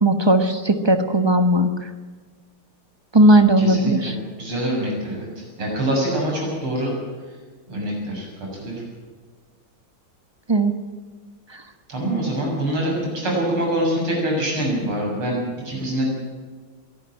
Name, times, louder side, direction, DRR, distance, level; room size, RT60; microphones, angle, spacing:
voice 1, 0.0-1.7 3.1-4.1 10.5-10.7, right 1 dB, 15° right, 8 dB, 0.9 m, -16 dB
voice 2, 3.6-4.1 4.4-6.9 7.7-8.3 8.5-8.8 11.9-16.1, right 1 dB, 90° right, -1 dB, 8.1 m, -25 dB
23.0 x 12.5 x 9.1 m, 1.4 s
omnidirectional pair, 2.3 m